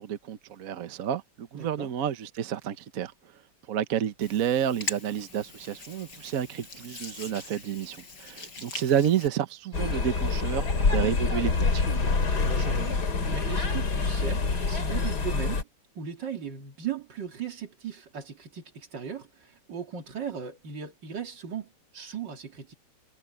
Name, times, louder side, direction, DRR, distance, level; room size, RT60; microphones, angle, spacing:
voice 1, 0.0-3.1 3.7-11.8, right 9 dB, 55° right, 1.3 m, -30 dB
voice 2, 1.5-1.9 12.2-15.7 15.9-22.7, right 7 dB, 85° right, 2.7 m, -38 dB
Hands, 4.2-9.3, left 3 dB, 85° left, 6.1 m, -41 dB
sound 1, 9.7-15.6, left 4 dB, 65° left, 3.1 m, -26 dB
omnidirectional pair, 1.9 m